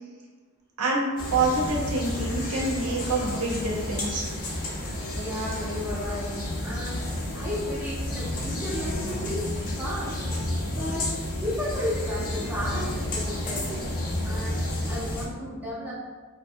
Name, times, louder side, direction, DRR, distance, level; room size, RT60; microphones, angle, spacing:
voice 1, 0.8-4.2, right 2 dB, 90° right, -3 dB, 0.6 m, -26 dB
sound 1, 1.2-15.2, left 1 dB, 40° left, 0.6 m, -31 dB
voice 2, 5.1-7.0 7.3-10.2 10.7-11.1 11.4-13.7 14.2-14.6 14.9-15.9, left 1 dB, 10° right, -8 dB, 0.6 m, -33 dB
2.6 x 2.2 x 2.5 m, 1.4 s
head